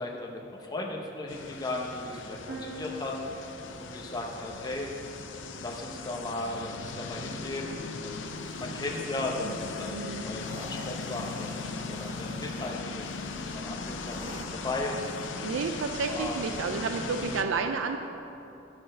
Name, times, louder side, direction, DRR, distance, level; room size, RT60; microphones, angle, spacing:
voice 1, 0.0-3.4 3.8-4.9 5.6-7.7 8.0-8.3 8.5-15.5 16.1-16.4, left 2 dB, 20° left, -1 dB, 0.8 m, -36 dB
sound 1, 1.3-17.4, left 4 dB, 80° left, 0.6 m, -38 dB
sound 2, 2.5-6.2, equal, 70° right, 1.3 m, -45 dB
sound 3, 8.2-16.7, right 2 dB, 20° right, 0.4 m, -50 dB
voice 2, 9.9-10.2 15.4-18.0, right 4 dB, 90° right, 5 dB, 0.4 m, -31 dB
12.0 x 4.3 x 6.3 m, 2.9 s
head